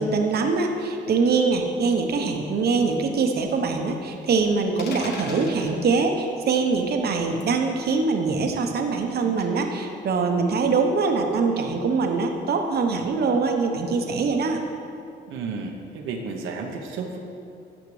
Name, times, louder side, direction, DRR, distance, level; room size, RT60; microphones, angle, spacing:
voice 1, 0.0-14.7, right 4 dB, 55° right, 4 dB, 0.9 m, -23 dB
sound 1, 4.8-5.8 7.4-7.6 9.4-9.7, left 3 dB, 55° left, 1.1 m, -37 dB
voice 2, 15.3-17.2, right 4 dB, 85° right, 2 dB, 0.8 m, -32 dB
12.0 x 6.4 x 3.2 m, 2.5 s
cardioid pair, 90°, 20 cm